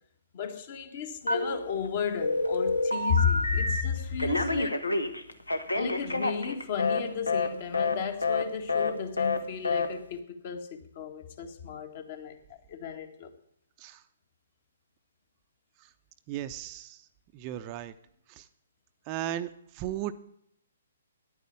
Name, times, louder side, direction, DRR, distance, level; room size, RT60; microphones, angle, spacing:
voice 1, 0.3-5.0 5.7-13.3, left 7 dB, 45° left, 1.8 m, -33 dB
Telephone, 1.3-1.9 2.2-3.8 4.2-7.0 7.3-7.5 7.7-8.0 8.2-8.4 8.7-8.9 9.2-9.4 9.6-9.9, left 3 dB, 85° left, 1.5 m, -28 dB
voice 2, 16.3-17.1 17.3-17.9 18.3-18.5 19.1-20.1, right 12 dB, 30° right, 0.7 m, -36 dB
10.5 x 9.4 x 8.5 m
figure-of-eight pair, 130°, 0 cm